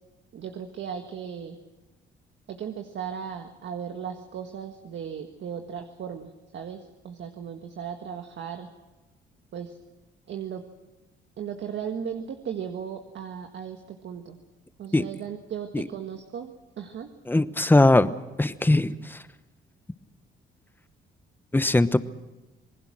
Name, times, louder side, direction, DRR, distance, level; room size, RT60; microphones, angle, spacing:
voice 1, 0.3-1.6 2.5-8.7 9.5-9.8 10.3-10.6 11.4-14.4 14.8-17.1, right 8 dB, 65° right, 5 dB, 1.7 m, -36 dB
voice 2, 17.3-18.1 18.4-19.0 21.5-22.0, left 2 dB, 10° left, 13 dB, 1.0 m, -20 dB
27.5 x 19.5 x 6.2 m, 1.1 s
cardioid pair, 90°, 20 cm